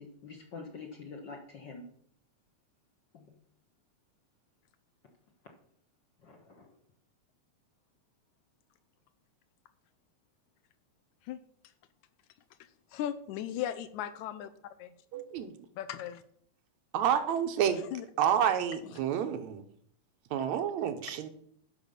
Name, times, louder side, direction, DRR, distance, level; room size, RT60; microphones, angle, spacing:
voice 1, 0.0-1.8 3.1-3.3 6.2-6.7, left 4 dB, 55° left, 2 dB, 1.3 m, -46 dB
voice 2, 12.9-14.5 14.8-14.9 15.8-16.2 17.7-18.1 18.8-18.9, left 11 dB, 85° left, 11 dB, 2.0 m, -37 dB
voice 3, 15.1-15.6 16.9-17.8 18.2-19.6 20.3-21.3, right 9 dB, 75° right, 7 dB, 2.0 m, -29 dB
11.0 x 5.5 x 6.7 m, 0.67 s
omnidirectional pair, 3.4 m